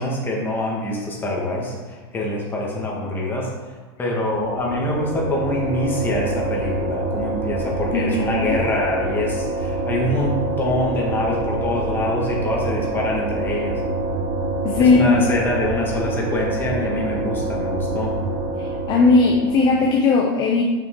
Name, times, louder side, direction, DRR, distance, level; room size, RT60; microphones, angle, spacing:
voice 1, 0.0-3.5 4.0-13.9 14.8-18.2, left 1 dB, 15° left, -3 dB, 1.7 m, -25 dB
sound 1, 4.1-20.0, right 2 dB, 30° right, 0.9 m, -26 dB
voice 2, 7.9-8.6 14.6-15.0 18.6-20.6, left 3 dB, 30° left, 0 dB, 0.8 m, -18 dB
7.2 x 5.9 x 3.8 m, 1.3 s
supercardioid pair, 140°, 14 cm